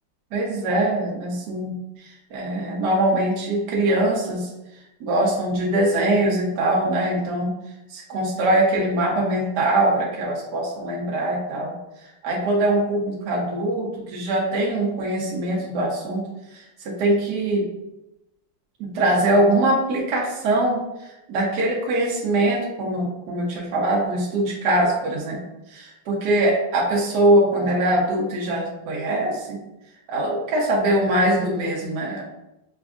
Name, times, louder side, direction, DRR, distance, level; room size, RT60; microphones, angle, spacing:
voice 1, 0.3-4.5 5.0-7.6 7.9-11.8 12.2-16.3 16.5-17.7 18.8-25.4 25.7-29.6 30.1-32.2, right 1 dB, 65° right, -3 dB, 1.2 m, -22 dB
6.0 x 2.3 x 2.4 m, 0.93 s
omnidirectional pair, 2.0 m